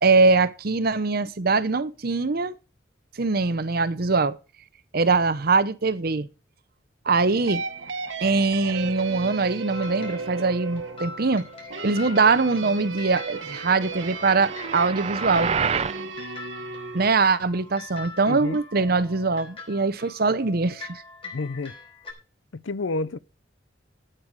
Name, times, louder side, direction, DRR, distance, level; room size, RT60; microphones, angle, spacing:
voice 1, 0.0-2.5 3.2-4.4 4.9-6.3 7.1-7.6 8.2-11.4 11.8-15.5 16.9-21.0, right 4 dB, 55° right, 0.8 m, -22 dB
sound 1, 7.3-17.1, right 4 dB, 85° right, 1.3 m, -35 dB
sound 2, 9.7-22.1, left 3 dB, 30° left, 4.3 m, -43 dB
sound 3, 13.7-16.0, right 6 dB, 35° right, 0.5 m, -28 dB
voice 2, 18.3-18.6 21.3-21.7 22.6-23.2, left 3 dB, 90° left, 0.6 m, -29 dB
13.0 x 9.1 x 4.8 m
head